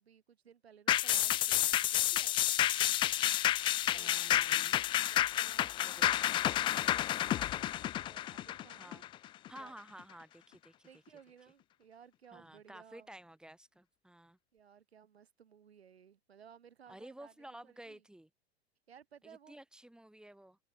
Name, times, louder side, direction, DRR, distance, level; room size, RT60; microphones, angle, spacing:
voice 1, 0.0-2.6 3.9-4.6 5.1-6.2 6.6-9.0 9.5-9.7 10.8-13.1 14.5-18.0 18.9-19.6, right 8 dB, 70° right, 7.7 m, -59 dB
sound 1, 0.9-9.6 10.0-10.1, left 13 dB, 15° left, 0.4 m, -30 dB
voice 2, 3.9-4.8 5.8-6.3 7.2-7.5 8.7-9.0 9.5-10.9 12.3-14.4 16.9-18.3 19.2-20.6, right 1 dB, ahead, 7.9 m, -53 dB
figure-of-eight pair, 95°, 33 cm